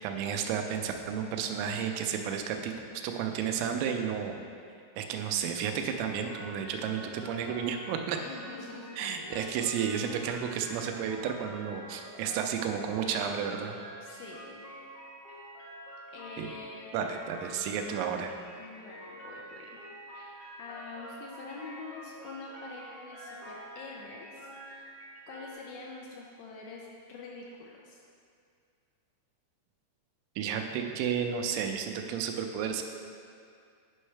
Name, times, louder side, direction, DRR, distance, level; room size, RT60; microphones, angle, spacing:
voice 1, 0.0-2.7 3.0-4.4 5.0-8.2 9.0-13.8 16.4-16.5 16.9-18.3 30.4-32.8, right 7 dB, 90° right, 5 dB, 3.2 m, -32 dB
sound 1, 6.2-25.5, right 1 dB, 60° left, 1.5 m, -47 dB
voice 2, 8.2-9.6 14.0-14.7 16.1-17.1 18.6-19.7 20.1-24.8 25.3-28.0, left 4 dB, 80° left, -2 dB, 2.8 m, -46 dB
9.8 x 5.4 x 3.3 m, 2.3 s
omnidirectional pair, 5.7 m